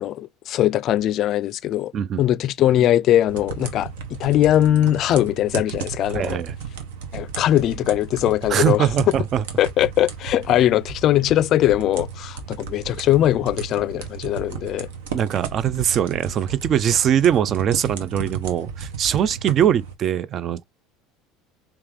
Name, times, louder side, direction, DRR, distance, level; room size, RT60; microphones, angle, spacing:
voice 1, 0.0-1.9 2.2-6.4 7.1-8.9 9.6-14.9, left 12 dB, 55° left, 0.3 m, -20 dB
sound 1, 3.3-19.9, right 6 dB, 75° right, 0.9 m, -34 dB
voice 2, 6.1-6.5 8.5-9.4 15.1-20.6, right 9 dB, 45° right, 0.4 m, -21 dB
3.4 x 2.9 x 3.3 m
hypercardioid pair, 80°, 0 cm